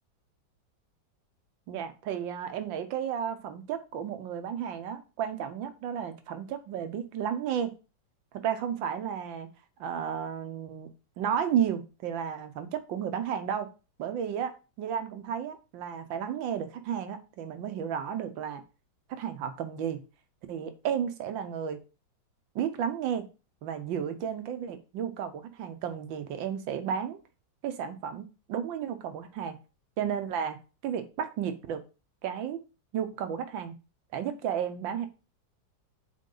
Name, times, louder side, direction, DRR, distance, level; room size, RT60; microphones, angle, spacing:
voice 1, 1.7-7.7 8.4-9.5 9.8-10.9 11.2-13.7 14.0-18.6 19.1-20.0 20.5-21.8 22.5-23.2 23.6-27.2 27.6-29.6 30.0-30.6 30.8-31.8 32.2-32.6 32.9-33.7 34.1-35.1, right 8 dB, 90° right, 1.6 m, -33 dB
7.8 x 3.7 x 3.8 m
omnidirectional pair, 2.0 m